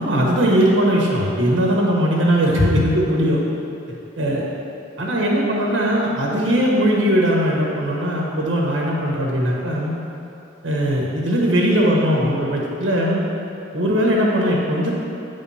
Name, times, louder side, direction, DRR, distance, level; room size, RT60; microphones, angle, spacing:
voice 1, 0.0-3.4 4.2-4.4 5.0-9.9 10.6-13.2 13.7-14.9, equal, 80° right, -3 dB, 1.2 m, -19 dB
9.6 x 3.5 x 5.6 m, 2.9 s
head